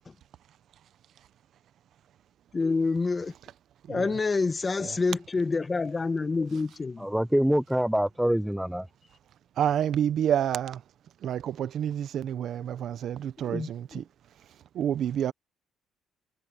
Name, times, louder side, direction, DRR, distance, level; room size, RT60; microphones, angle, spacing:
voice 1, 2.5-3.3 3.9-7.1 13.5-13.7, left 4 dB, 25° left, 1.8 m, -27 dB
voice 2, 3.9-4.2 4.8-5.0 9.6-10.8 11.2-14.0 14.7-15.3, right 9 dB, 65° right, 0.9 m, -29 dB
voice 3, 7.0-8.9, equal, 5° right, 0.8 m, -25 dB
cardioid pair, 95°, 0 cm